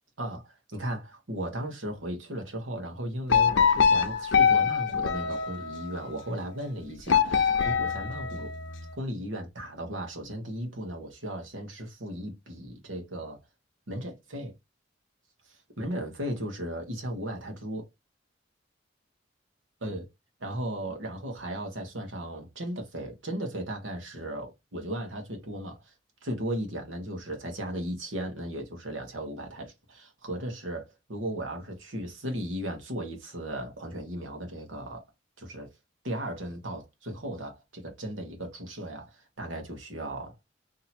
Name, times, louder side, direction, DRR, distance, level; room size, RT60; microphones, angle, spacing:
voice 1, 0.2-8.5 9.0-13.4 13.9-14.5 15.4-17.9 19.8-20.1 20.4-25.9 26.2-35.0 35.4-35.7 36.0-40.3, right 1 dB, 70° right, 1.3 m, -36 dB
sound 1, 3.3-6.0 7.1-8.8, left 6 dB, 70° left, 0.6 m, -24 dB
2.8 x 2.8 x 4.3 m
head